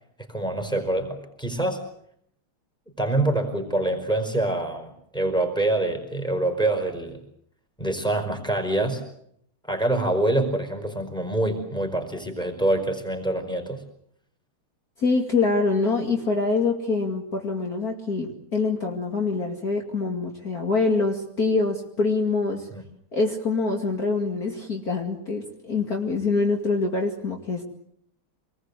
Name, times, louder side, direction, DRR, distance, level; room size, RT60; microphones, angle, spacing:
voice 1, 0.3-1.8 3.0-7.2 7.8-9.0 9.7-13.8 22.7-22.8, right 2 dB, ahead, 5 dB, 4.8 m, -25 dB
voice 2, 15.0-22.7 23.1-27.6, left 3 dB, 45° left, 1 dB, 2.8 m, -25 dB
26.5 x 20.5 x 8.3 m, 0.70 s
omnidirectional pair, 2.3 m